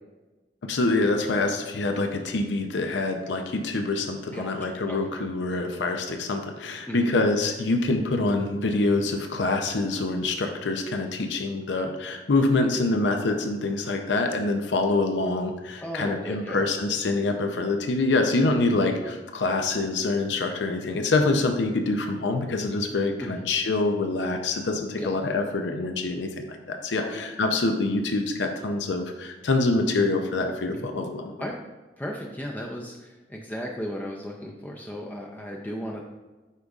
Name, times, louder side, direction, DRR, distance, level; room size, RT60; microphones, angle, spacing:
voice 1, 0.6-31.3, left 2 dB, 85° left, 5 dB, 0.6 m, -25 dB
voice 2, 4.3-5.0 6.9-7.1 15.8-16.6 23.2-23.4 25.0-25.2 27.0-27.2 30.7-30.9 31.4-31.6 32.0-36.0, equal, 10° left, -1 dB, 0.4 m, -35 dB
8.2 x 5.2 x 2.4 m, 1.2 s
head